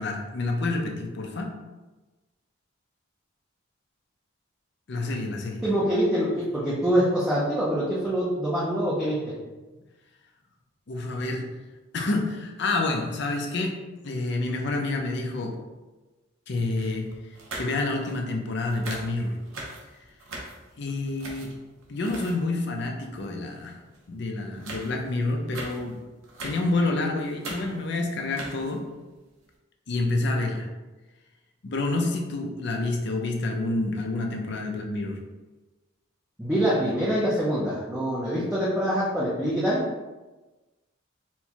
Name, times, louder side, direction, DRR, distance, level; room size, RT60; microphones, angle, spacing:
voice 1, 0.0-1.5 4.9-5.6 10.9-11.5 11.9-13.8 14.0-15.6 16.5-17.1 17.5-19.4 20.8-21.5 21.9-23.7 24.1-26.0 26.4-28.8 29.9-30.7 31.6-35.2, left 2 dB, 55° left, 1 dB, 0.5 m, -28 dB
voice 2, 5.6-9.3 36.4-39.8, equal, 5° right, -8 dB, 0.5 m, -25 dB
sound 1, 16.8-18.3 18.6-22.6 23.1-23.2 23.7-24.1 24.4-26.8 27.1-28.0 28.2-28.9 29.4-29.5, right 2 dB, 80° right, 0.8 m, -41 dB
4.4 x 2.2 x 2.8 m, 1.2 s
head